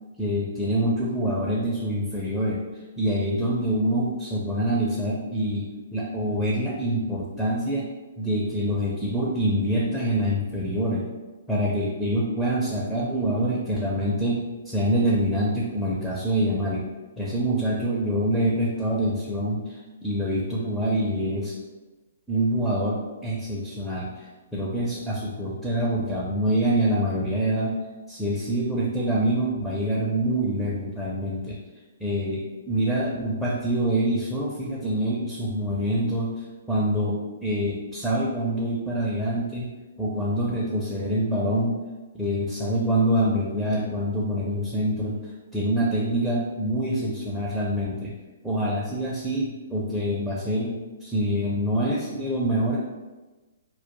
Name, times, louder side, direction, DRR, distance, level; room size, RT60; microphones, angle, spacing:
voice 1, 0.2-2.6 3.0-7.9 8.2-11.1 11.5-16.9 17.2-19.7 20.0-21.5 22.3-24.2 24.5-27.8 28.1-31.6 32.0-39.7 40.0-41.8 42.1-45.2 45.5-48.1 48.4-52.8, right 1 dB, ahead, -7 dB, 0.4 m, -25 dB
2.2 x 2.1 x 2.9 m, 1.2 s
figure-of-eight pair, 125°, 0 cm